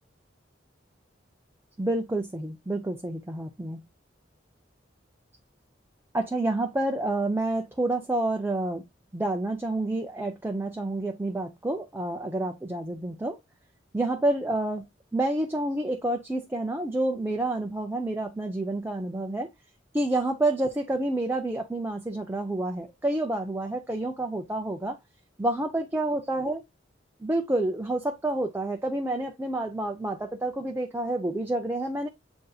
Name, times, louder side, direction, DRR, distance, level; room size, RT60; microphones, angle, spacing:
voice 1, 1.8-3.8 6.1-8.8 9.1-13.4 13.9-14.9 15.1-19.5 19.9-25.0 25.4-26.6 27.2-32.1, right 2 dB, 10° right, 0.5 m, -28 dB
7.9 x 2.6 x 2.3 m
head